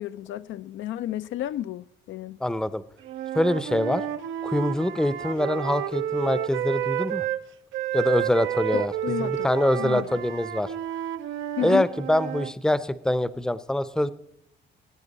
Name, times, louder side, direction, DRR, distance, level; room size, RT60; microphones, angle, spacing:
voice 1, 0.0-2.4 8.7-9.5 9.8-10.2 11.6-11.8, left 11 dB, 75° left, 0.4 m, -32 dB
voice 2, 2.4-2.8 3.3-4.0 4.4-7.3 7.9-8.9 9.2-10.7 11.6-14.1, left 1 dB, 5° left, 0.6 m, -24 dB
Wind instrument woodwind instrument, 3.0-7.4 7.7-12.5, right 11 dB, 80° right, 0.6 m, -30 dB
19.5 x 9.2 x 4.1 m
cardioid pair, 90°, 20 cm